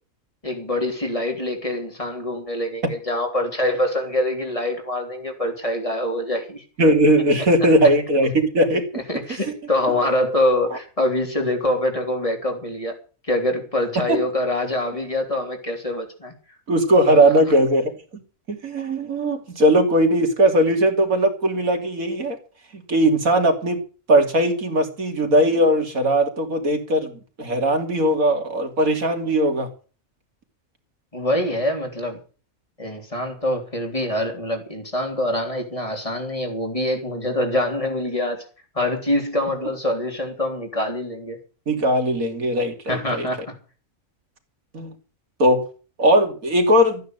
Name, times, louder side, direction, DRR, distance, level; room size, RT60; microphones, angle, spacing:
voice 1, 0.4-6.6 8.9-13.0 13.2-16.3 31.1-32.2 32.8-38.5 38.8-41.4 42.9-43.5, left 1 dB, 25° left, 3.6 m, -25 dB
voice 2, 6.8-8.8 10.7-10.8 14.1-14.2 16.7-17.9 18.5-22.4 22.9-23.8 24.1-27.1 27.4-29.7 41.7-43.3 44.7-44.9 45.4-45.7 46.0-47.0, right 1 dB, 80° right, 3.2 m, -19 dB
14.5 x 9.5 x 7.9 m
omnidirectional pair, 1.4 m